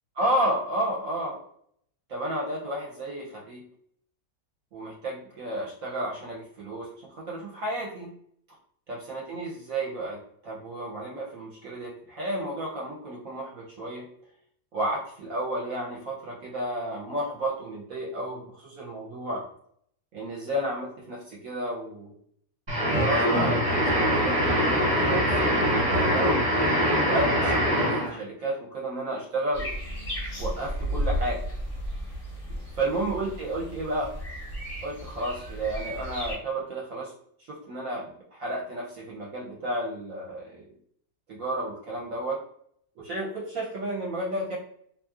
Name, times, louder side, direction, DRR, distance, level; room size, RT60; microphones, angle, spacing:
voice 1, 0.2-1.4 2.1-3.6 4.7-8.1 8.9-14.0 14.7-19.5 20.1-22.2 22.9-26.4 26.8-29.7 30.4-31.4 32.8-34.2 34.8-37.1 37.5-40.7 41.3-42.4 43.0-44.6, right 1 dB, 65° right, -4 dB, 1.0 m, -32 dB
sound 1, 22.7-28.2, equal, 25° right, 1.0 m, -23 dB
sound 2, 29.5-36.3, equal, 35° left, 0.6 m, -34 dB
2.7 x 2.6 x 2.3 m, 0.66 s
omnidirectional pair, 1.7 m